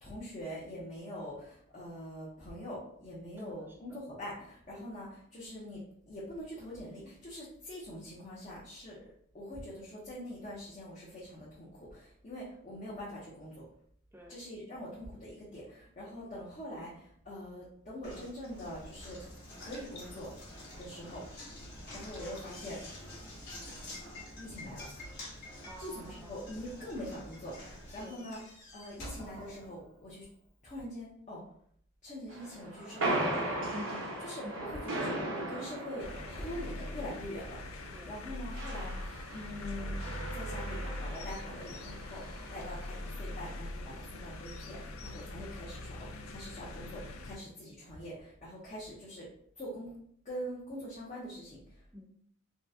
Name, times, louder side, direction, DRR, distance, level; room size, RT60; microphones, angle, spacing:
voice 1, 0.0-9.0 9.3-13.7 14.3-19.3 19.6-20.3 20.8-21.3 21.9-22.8 24.4-24.9 25.8-28.4 28.7-30.3 30.6-31.4 32.0-33.4 34.2-40.0 40.3-49.3 49.6-49.9 50.2-51.8, equal, 35° left, -8 dB, 0.8 m, -44 dB
voice 2, 3.4-4.0 4.8-4.9 14.1-14.4 16.0-16.1 25.6-26.5 28.0-28.2 33.7-34.7 37.9-38.2 51.9-52.1, left 1 dB, 10° right, 2 dB, 0.4 m, -48 dB
Knock, 18.0-30.2, left 1 dB, 50° left, 1.3 m, -47 dB
sound 1, 32.3-43.2, right 1 dB, 70° right, 0.9 m, -38 dB
sound 2, 36.0-47.4, left 1 dB, 85° left, 0.5 m, -42 dB
3.6 x 2.2 x 2.7 m, 0.65 s
head